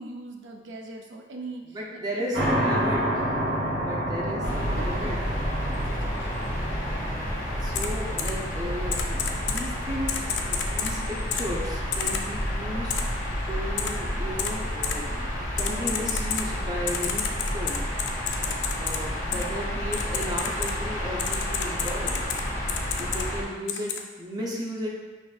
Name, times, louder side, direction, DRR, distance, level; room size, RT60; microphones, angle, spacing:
voice 1, 0.0-2.8 4.3-5.1 5.6-6.7 19.3-19.8 20.1-20.3, right 2 dB, 90° right, 2 dB, 0.5 m, -42 dB
voice 2, 1.7-5.2 7.6-15.2 15.6-17.8 18.8-22.2 23.0-24.9, equal, 20° right, -3 dB, 0.6 m, -35 dB
sound 1, 2.3-22.1, right 1 dB, 60° right, 1.1 m, -34 dB
sound 2, 4.4-23.4, equal, 45° left, 0.9 m, -30 dB
Typing, 7.7-7.9 8.2-8.3 8.9-9.6 10.1-10.9 11.3-11.4 11.9-12.2 12.9-13.0 13.8-13.9 14.4-14.5 14.8-14.9 15.6-16.4 16.9-19.0 19.3-19.4 19.9-20.7 21.2-22.4 22.7-23.2 23.7-24.0, left 8 dB, 80° left, 0.4 m, -29 dB
5.8 x 2.6 x 2.4 m, 1.2 s
head